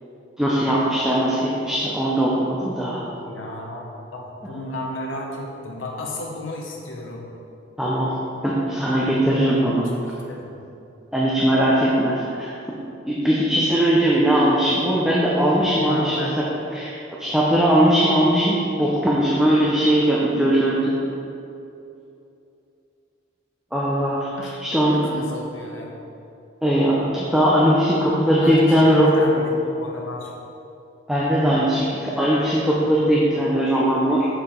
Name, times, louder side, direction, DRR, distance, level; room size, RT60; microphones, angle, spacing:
voice 1, 0.4-3.0 7.8-8.1 8.4-9.9 11.1-12.8 13.1-16.4 16.7-16.9 17.2-20.9 23.7-24.3 24.6-25.0 26.6-29.1 31.1-34.3, right 1 dB, 5° right, -6 dB, 0.7 m, -19 dB
voice 2, 3.2-7.2 10.3-10.5 15.8-16.3 24.4-24.6 24.9-26.0 28.4-28.9 29.1-30.3, left 1 dB, 80° left, -1 dB, 1.2 m, -33 dB
6.7 x 6.6 x 3.8 m, 2.7 s
head